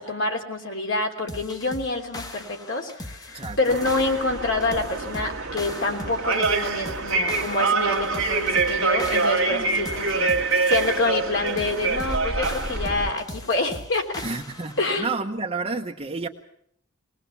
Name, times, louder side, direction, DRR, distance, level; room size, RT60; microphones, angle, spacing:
voice 1, 0.0-14.2 14.8-15.1, left 2 dB, 65° left, 2 dB, 3.2 m, -27 dB
sound 1, 1.3-14.8, left 2 dB, 20° left, 1.2 m, -39 dB
voice 2, 3.3-3.8 9.5-9.9 14.2-16.3, right 3 dB, 30° right, 2 dB, 1.0 m, -31 dB
sound 2, 3.7-13.1, right 3 dB, 85° right, 1.6 m, -25 dB
20.5 x 20.0 x 7.2 m, 0.69 s
head